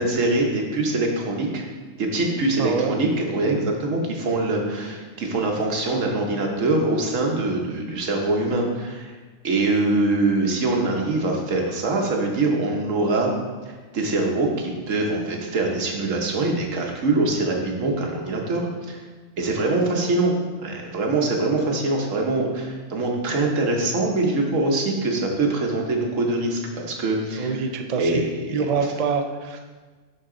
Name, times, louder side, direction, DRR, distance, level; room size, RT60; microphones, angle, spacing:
voice 1, 0.0-1.6 2.0-9.1 9.4-13.3 13.7-19.0 19.4-20.3 20.6-27.5 28.0-28.8, right 2 dB, 75° right, 1 dB, 1.4 m, -23 dB
voice 2, 2.6-2.9 27.4-28.2 28.5-29.6, right 5 dB, 55° right, 5 dB, 0.4 m, -25 dB
10.5 x 4.0 x 3.8 m, 1.4 s
omnidirectional pair, 1.3 m